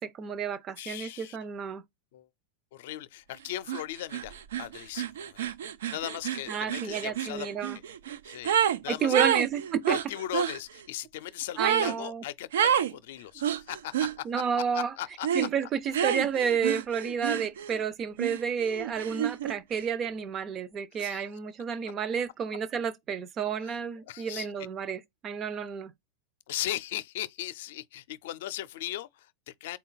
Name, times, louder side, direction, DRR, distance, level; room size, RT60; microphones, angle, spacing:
voice 1, 0.0-1.8 6.5-7.8 8.9-10.0 11.6-12.2 14.2-14.9 15.3-25.9, right 7 dB, 30° right, 0.5 m, -31 dB
voice 2, 0.8-1.4 2.1-2.3 2.7-5.5 5.9-7.5 8.2-9.3 9.9-14.2 14.6-15.3 20.9-21.2 23.6-23.8 24.1-24.5 26.5-29.8, left 13 dB, 65° left, 0.5 m, -38 dB
sound 1, 3.7-3.8 4.1-8.8 9.1-10.6 11.6-12.0 12.5-12.9 13.4-14.1 15.2-15.5 15.9-17.8 18.2-19.6, right 9 dB, 85° right, 0.4 m, -29 dB
3.9 x 2.3 x 4.0 m
supercardioid pair, 135°, 0 cm